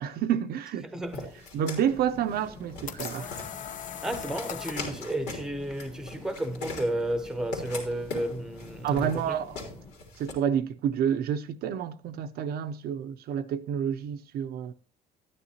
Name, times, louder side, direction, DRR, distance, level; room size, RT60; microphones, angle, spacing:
voice 1, 0.0-0.9 1.5-3.4 8.8-9.6 10.2-14.7, right 8 dB, 70° right, 0.6 m, -29 dB
voice 2, 0.9-1.3 4.0-9.4, right 1 dB, 5° right, 0.8 m, -32 dB
sound 1, 1.1-10.3, left 3 dB, 85° left, 3.2 m, -40 dB
sound 2, 1.9-9.9, left 2 dB, 30° left, 1.6 m, -48 dB
sound 3, 2.4-5.0, left 9 dB, 50° left, 0.6 m, -39 dB
12.5 x 9.9 x 2.8 m
cardioid pair, 110°, 17 cm